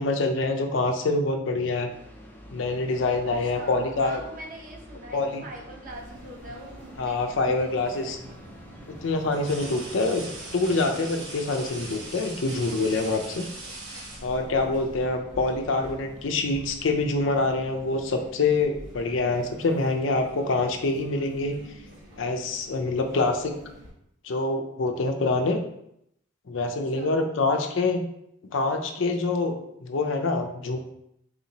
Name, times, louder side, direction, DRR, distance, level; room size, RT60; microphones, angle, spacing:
voice 1, 0.0-1.9 2.5-4.2 5.1-5.4 7.0-8.2 8.9-10.3 10.5-13.4 14.2-21.5 22.2-23.4 24.2-25.6 26.5-28.0 28.5-30.8, left 3 dB, 75° left, 5 dB, 0.5 m, -25 dB
sound 1, 1.9-11.0, equal, 10° left, 0.5 m, -47 dB
voice 2, 3.3-8.4 13.3-14.2 23.1-23.8 26.7-27.7, right 1 dB, 45° right, 0 dB, 0.7 m, -44 dB
sound 2, 5.0-5.9 7.6-7.8 9.3-14.8 16.0-16.2 16.6-17.3 17.6-18.0 18.8-21.4, right 2 dB, 60° right, 1.1 m, -43 dB
sound 3, 5.9-23.9, right 1 dB, 85° right, 1.2 m, -48 dB
4.1 x 2.7 x 2.9 m, 0.77 s
head